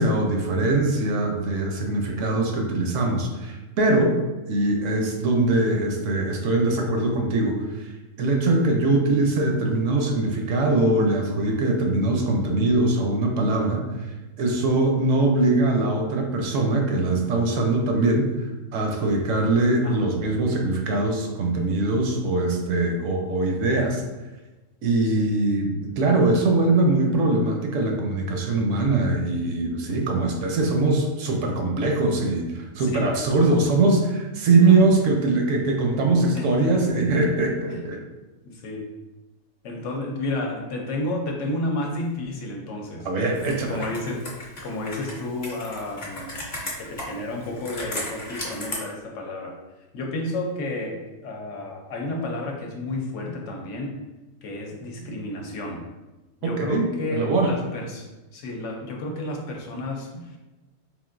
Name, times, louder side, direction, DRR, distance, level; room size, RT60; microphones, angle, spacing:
voice 1, 0.0-4.2 4.5-7.9 8.2-13.8 14.4-18.3 18.7-24.0 24.8-38.0 43.0-43.8 56.4-56.9 57.1-57.5, right 2 dB, 75° right, 2 dB, 0.9 m, -22 dB
voice 2, 32.8-33.2 34.7-34.9 36.3-36.8 37.7-37.8 38.4-38.9 39.6-43.1 43.7-46.4 46.8-49.6 49.9-54.0 54.4-55.8 56.4-60.4, left 1 dB, 70° left, 0 dB, 0.9 m, -31 dB
Computer keyboard, 43.3-48.8, left 1 dB, 45° left, 0.7 m, -36 dB
3.7 x 2.5 x 2.5 m, 1.1 s
omnidirectional pair, 1.4 m